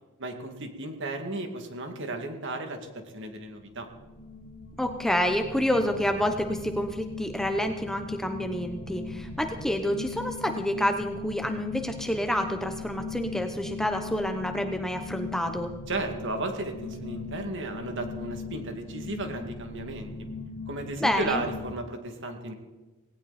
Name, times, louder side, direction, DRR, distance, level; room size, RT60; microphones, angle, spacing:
voice 1, 0.2-3.9 15.9-20.1 20.7-22.5, right 2 dB, 55° right, 4 dB, 2.3 m, -34 dB
sound 1, 3.6-21.7, left 4 dB, 70° left, 1.9 m, -39 dB
voice 2, 4.8-15.7 21.0-21.4, equal, ahead, 5 dB, 0.9 m, -28 dB
18.5 x 18.0 x 4.3 m, 1.2 s
head